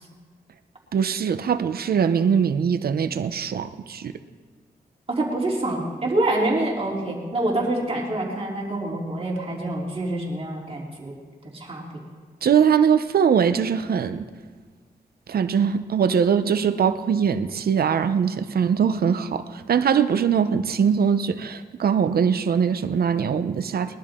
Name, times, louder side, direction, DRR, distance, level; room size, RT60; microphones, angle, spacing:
voice 1, 0.9-4.1 12.4-14.2 15.3-24.0, right 7 dB, 70° right, 11 dB, 0.7 m, -22 dB
voice 2, 5.1-11.1 11.5-11.9, right 1 dB, 35° right, -3 dB, 3.4 m, -26 dB
21.5 x 12.0 x 3.7 m, 1.5 s
cardioid pair, 80°, 16 cm